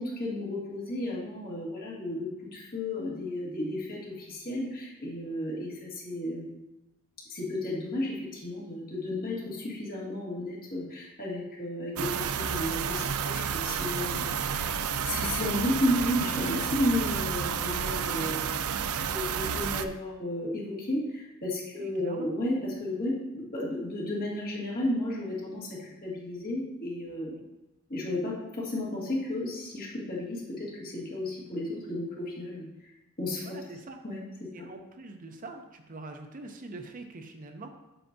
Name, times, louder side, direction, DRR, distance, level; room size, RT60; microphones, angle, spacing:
voice 1, 0.0-6.5 7.3-14.7 15.0-18.6 19.0-27.3 27.9-32.9 33.2-33.6 34.0-34.2, left 1 dB, 45° left, -5 dB, 2.1 m, -33 dB
sound 1, 12.0-19.9, right 7 dB, 85° right, 0.4 m, -31 dB
voice 2, 21.8-22.3 27.3-27.4 33.4-34.0 34.5-37.7, right 2 dB, 40° right, 5 dB, 0.6 m, -44 dB
7.8 x 6.9 x 2.7 m, 1.0 s
head